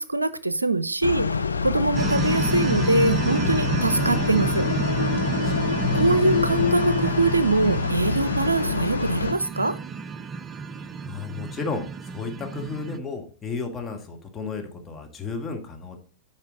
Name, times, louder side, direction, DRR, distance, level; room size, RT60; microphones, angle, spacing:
voice 1, 0.0-4.7 5.9-9.8, right 2 dB, 85° right, 15 dB, 0.5 m, -23 dB
sound 1, 1.0-9.3, left 5 dB, 80° left, 0.4 m, -26 dB
sound 2, 1.9-13.0, right 5 dB, 25° right, 0.4 m, -30 dB
voice 2, 5.4-5.8 11.0-16.0, left 4 dB, 15° left, 3 dB, 1.6 m, -33 dB
8.3 x 5.5 x 3.9 m, 0.38 s
figure-of-eight pair, 100°, 0 cm